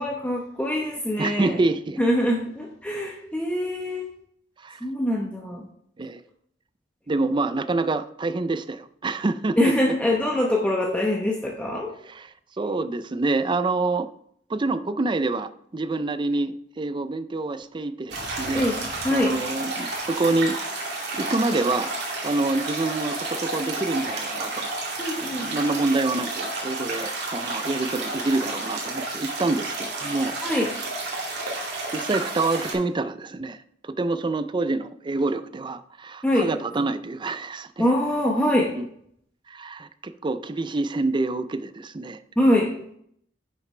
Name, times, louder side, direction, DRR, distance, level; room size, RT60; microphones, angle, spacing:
voice 1, 0.0-1.6 2.0-4.0 4.8-5.7 9.6-11.9 18.5-18.8 19.0-19.3 25.0-25.5 30.4-30.7 36.2-36.5 37.8-38.7 42.4-42.7, left 1 dB, 10° left, -2 dB, 1.0 m, -23 dB
voice 2, 1.2-2.0 4.6-4.8 6.0-6.2 7.1-9.7 12.1-14.1 14.5-18.7 19.1-20.8 21.1-21.9 22.2-24.7 25.2-30.3 31.9-33.6 33.8-37.9 38.8-38.9 39.5-42.2, right 2 dB, 25° right, 12 dB, 0.4 m, -27 dB
sound 1, 18.1-32.7, right 2 dB, 60° right, 2.5 m, -31 dB
9.9 x 6.5 x 3.3 m, 0.69 s
head